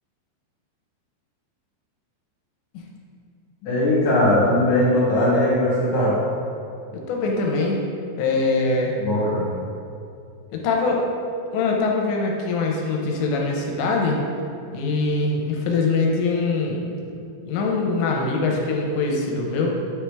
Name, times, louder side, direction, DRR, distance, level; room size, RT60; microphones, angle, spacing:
voice 1, 3.6-6.2 9.0-9.4, left 1 dB, 60° left, -8 dB, 3.1 m, -19 dB
voice 2, 7.1-7.8 8.2-8.9 10.5-11.0 11.5-14.2 14.7-16.8 17.5-19.8, left 3 dB, 90° left, -1 dB, 3.0 m, -23 dB
9.0 x 3.4 x 4.8 m, 2.5 s
omnidirectional pair, 5.2 m